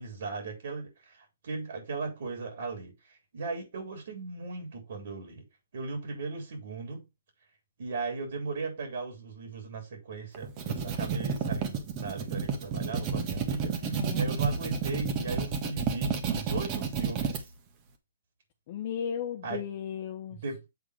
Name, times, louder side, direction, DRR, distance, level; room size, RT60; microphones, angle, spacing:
voice 1, 0.0-5.4 5.7-7.0 7.8-17.4 19.4-19.6 20.3-20.6, right 3 dB, 60° right, 3.6 m, -37 dB
sound 1, 10.3-17.4, right 5 dB, 30° right, 1.5 m, -31 dB
voice 2, 13.8-14.2 18.7-20.4, left 8 dB, 40° left, 0.8 m, -35 dB
8.3 x 3.7 x 5.0 m
hypercardioid pair, 150°, 0 cm